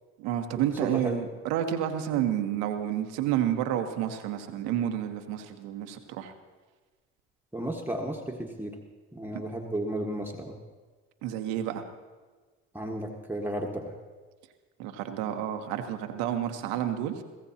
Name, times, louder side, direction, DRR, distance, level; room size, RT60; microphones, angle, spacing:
voice 1, 0.2-6.3 9.3-9.4 11.2-11.8 14.8-17.2, right 10 dB, 85° right, 6 dB, 1.2 m, -30 dB
voice 2, 0.8-1.2 7.5-8.8 9.1-10.6 12.7-13.9, right 1 dB, 5° right, 0 dB, 1.4 m, -33 dB
22.5 x 15.5 x 2.9 m, 1.4 s
hypercardioid pair, 60°, 31 cm